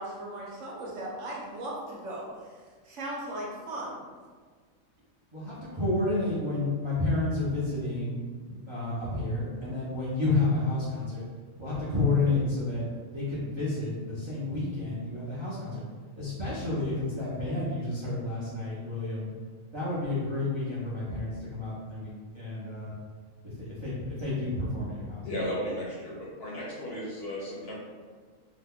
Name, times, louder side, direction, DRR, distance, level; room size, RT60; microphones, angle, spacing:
voice 1, 0.0-2.6 2.8-4.0, right 1 dB, 65° right, -3 dB, 1.0 m, -37 dB
voice 2, 5.3-8.2 8.5-11.2 11.6-12.8 13.1-15.8 16.2-19.3 19.7-22.9 23.6-25.2, left 2 dB, 35° right, -10 dB, 0.5 m, -30 dB
voice 3, 25.2-27.8, equal, 55° left, -5 dB, 0.8 m, -35 dB
2.9 x 2.2 x 3.5 m, 1.5 s
omnidirectional pair, 1.4 m